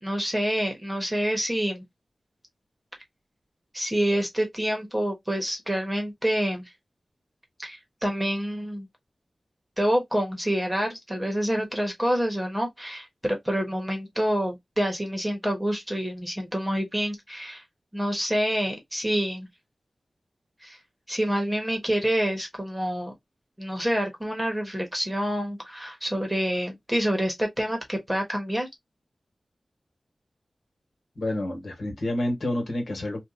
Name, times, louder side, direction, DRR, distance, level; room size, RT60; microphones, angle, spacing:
voice 1, 0.0-1.8 3.7-6.7 7.6-8.9 9.8-17.6 17.9-19.5 20.6-20.8 21.1-23.1 23.6-28.7, equal, 5° right, 1.2 m, -27 dB
voice 2, 31.2-33.2, left 1 dB, 75° left, 1.5 m, -29 dB
2.7 x 2.4 x 3.6 m
wide cardioid pair, 90°, 0 cm